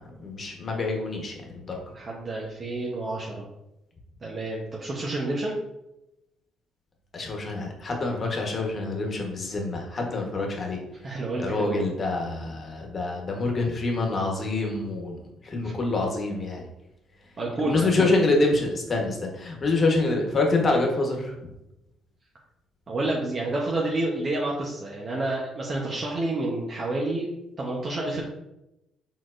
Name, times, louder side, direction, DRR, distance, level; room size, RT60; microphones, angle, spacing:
voice 1, 0.2-1.7 7.1-10.8 11.4-15.2 15.4-16.7 17.6-21.3, left 3 dB, 45° left, 1 dB, 1.2 m, -26 dB
voice 2, 1.9-3.5 4.2-5.6 11.0-11.9 15.6-15.7 17.4-18.1 22.9-27.3 27.6-28.2, right 2 dB, 40° right, -3 dB, 0.9 m, -29 dB
4.5 x 3.9 x 2.6 m, 0.88 s
supercardioid pair, 65°, 0 cm